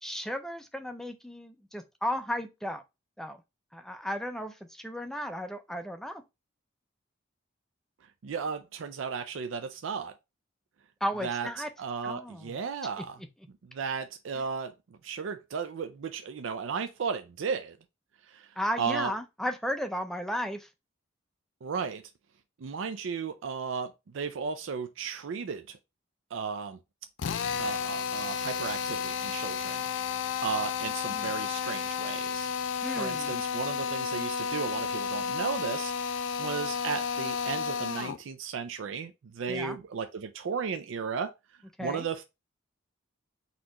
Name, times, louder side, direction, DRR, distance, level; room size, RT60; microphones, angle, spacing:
voice 1, 0.0-2.8 3.2-3.4 3.7-6.2 11.0-11.7 12.0-12.6 18.6-20.7 31.1-31.3 32.8-33.3 39.5-39.8 41.8-42.1, equal, ahead, 0.4 m, -34 dB
voice 2, 8.2-10.1 11.2-11.5 11.8-13.2 13.7-14.7 15.0-17.8 18.3-18.5 18.8-19.1 21.6-22.0 22.6-25.8 26.3-26.8 27.6-29.8 30.4-32.5 32.8-41.3 41.8-42.2, right 6 dB, 75° right, 0.4 m, -34 dB
Drill, 27.2-38.2, left 6 dB, 70° left, 0.4 m, -32 dB
4.2 x 2.9 x 3.7 m
head